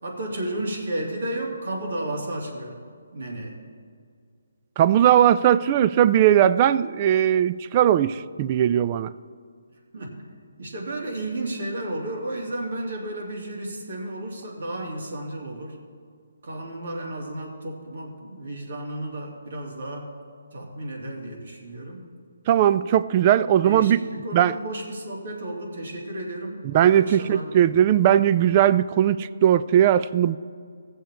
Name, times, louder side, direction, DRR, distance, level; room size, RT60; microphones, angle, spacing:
voice 1, 0.0-2.8 3.1-3.6 9.9-10.1 10.6-15.8 16.4-20.1 20.5-22.1 23.6-27.4 27.8-27.9, right 1 dB, 65° right, 0 dB, 2.6 m, -33 dB
voice 2, 4.8-9.1 22.5-24.0 24.3-24.5 26.7-30.4, right 10 dB, 30° right, 15 dB, 0.3 m, -19 dB
16.0 x 7.1 x 4.5 m, 2.1 s
hypercardioid pair, 155°, 0 cm